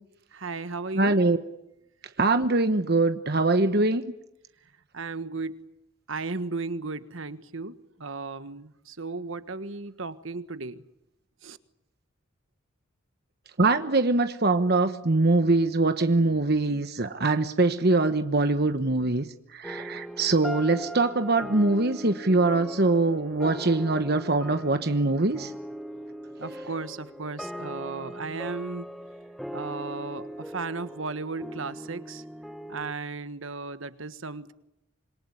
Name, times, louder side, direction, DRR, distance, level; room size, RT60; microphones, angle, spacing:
voice 1, 0.3-1.2 4.9-5.7 6.1-10.8 11.4-11.6 26.4-28.9 29.5-32.2 32.7-34.5, right 3 dB, 70° right, 1.5 m, -35 dB
voice 2, 0.9-1.4 2.2-4.1 13.6-19.3 19.5-25.5, right 2 dB, 50° right, 1.2 m, -23 dB
sound 1, 19.6-32.9, equal, ahead, 1.0 m, -40 dB
27.0 x 22.5 x 9.9 m
head